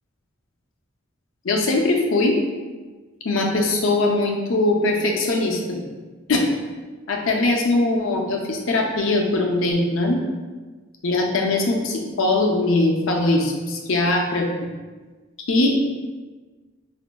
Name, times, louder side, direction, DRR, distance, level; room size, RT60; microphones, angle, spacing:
voice 1, 1.4-2.4 3.2-5.8 6.3-6.5 7.1-10.2 11.0-14.5 15.5-15.7, left 2 dB, 75° left, 2 dB, 0.6 m, -21 dB
5.0 x 2.5 x 2.2 m, 1.3 s
head